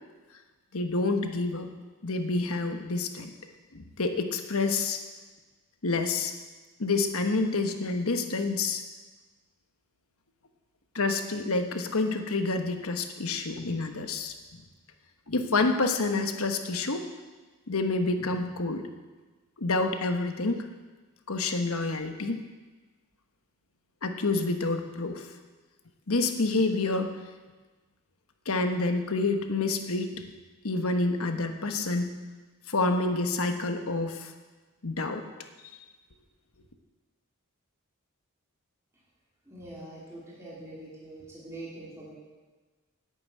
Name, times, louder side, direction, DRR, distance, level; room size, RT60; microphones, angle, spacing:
voice 1, 0.7-1.7 2.0-3.3 3.7-5.0 5.8-6.3 6.8-8.8 10.9-14.3 15.3-17.0 17.7-18.9 19.6-20.7 21.3-22.4 24.0-25.3 26.1-27.1 28.5-30.2 30.6-32.1 32.7-34.3 34.8-35.2, left 3 dB, 75° left, 6 dB, 1.2 m, -28 dB
voice 2, 39.5-42.2, right 1 dB, 15° right, -7 dB, 3.0 m, -44 dB
10.5 x 9.0 x 8.6 m, 1.3 s
head